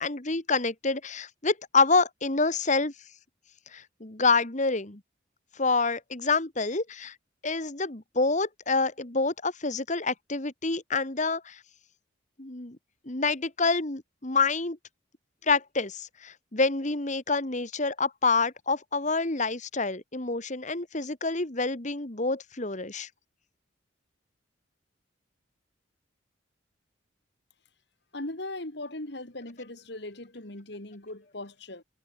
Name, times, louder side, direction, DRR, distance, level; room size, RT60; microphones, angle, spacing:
voice 1, 0.0-2.9 3.7-5.0 5.6-7.1 7.4-11.6 12.4-12.8 13.1-14.8 15.4-23.1, left 3 dB, 40° left, 1.9 m, -27 dB
voice 2, 28.1-31.8, left 2 dB, 60° left, 2.7 m, -39 dB
head